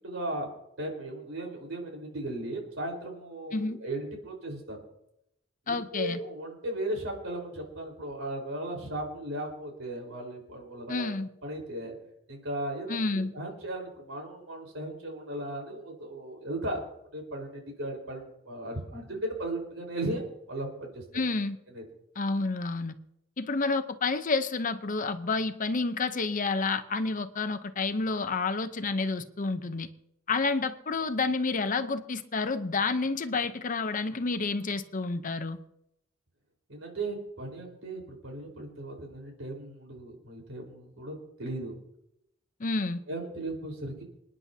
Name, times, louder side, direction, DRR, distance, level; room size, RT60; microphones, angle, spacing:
voice 1, 0.0-0.5 0.8-4.8 5.7-11.1 11.4-11.9 12.3-16.8 17.1-21.0 21.7-21.8 36.7-41.8 43.1-44.0, right 1 dB, 75° right, 1 dB, 4.3 m, -36 dB
voice 2, 5.7-6.2 10.9-11.3 12.9-13.3 21.1-21.6 22.2-22.9 23.4-29.9 30.3-35.6 42.6-43.0, left 3 dB, 40° left, 10 dB, 0.7 m, -29 dB
27.5 x 9.9 x 2.8 m, 0.80 s
head